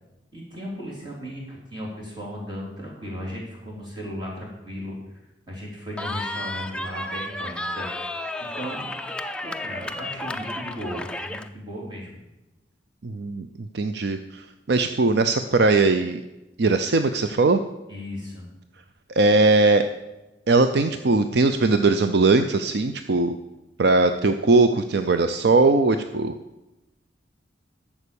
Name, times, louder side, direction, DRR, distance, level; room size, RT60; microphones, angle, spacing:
voice 1, 0.3-5.0 5.5-7.9 8.4-8.9 9.4-12.2 17.9-18.5, equal, 25° right, -5 dB, 3.8 m, -36 dB
Cheering, 6.0-11.5, left 1 dB, 5° left, 0.4 m, -32 dB
voice 2, 13.0-13.5 13.7-16.2 16.6-17.6 19.1-19.8 20.5-23.3 23.8-26.3, right 3 dB, 60° right, 9 dB, 0.5 m, -20 dB
11.0 x 7.1 x 7.0 m, 1.0 s
head